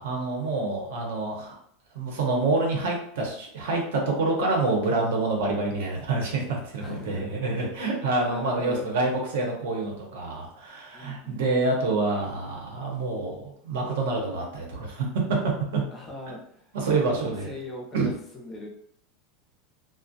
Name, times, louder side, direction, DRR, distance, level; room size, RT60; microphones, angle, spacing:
voice 1, 0.0-1.5 1.9-15.1 15.7-15.8 16.7-17.5 17.9-18.1, right 3 dB, 80° right, 0 dB, 0.8 m, -27 dB
voice 2, 6.8-7.2 7.8-8.0 8.3-8.9 10.9-11.4 15.9-18.7, left 1 dB, 15° left, -2 dB, 0.4 m, -40 dB
2.4 x 2.0 x 2.6 m, 0.65 s
supercardioid pair, 180°, 0 cm